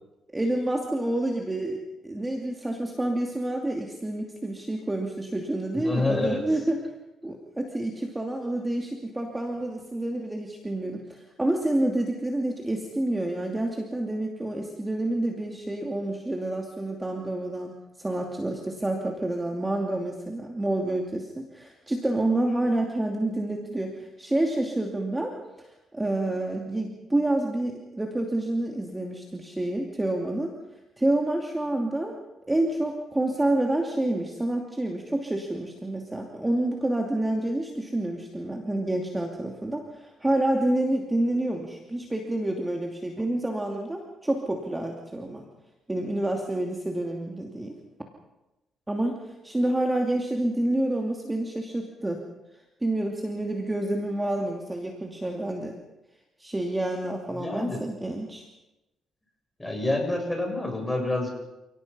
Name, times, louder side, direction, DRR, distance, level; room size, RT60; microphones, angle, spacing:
voice 1, 0.3-6.8 7.2-30.5 31.0-32.2 32.5-45.5 45.9-47.8 48.9-52.2 52.8-55.7 56.4-58.4, right 1 dB, 15° right, 2 dB, 2.7 m, -28 dB
voice 2, 5.8-6.4 57.3-57.8 59.6-61.3, left 2 dB, 10° left, 2 dB, 7.2 m, -27 dB
30.0 x 18.0 x 5.6 m, 0.99 s
cardioid pair, 90°, 0 cm